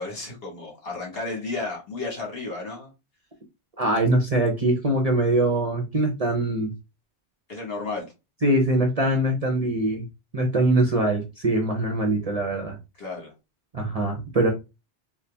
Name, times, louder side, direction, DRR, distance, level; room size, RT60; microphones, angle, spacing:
voice 1, 0.0-2.9 7.5-8.1 13.0-13.3, left 3 dB, 55° left, -1 dB, 1.7 m, -33 dB
voice 2, 3.8-6.7 8.4-10.1 10.3-12.8 13.7-14.5, right 1 dB, 40° right, 3 dB, 0.7 m, -23 dB
4.1 x 2.2 x 3.3 m, 0.26 s
omnidirectional pair, 1.2 m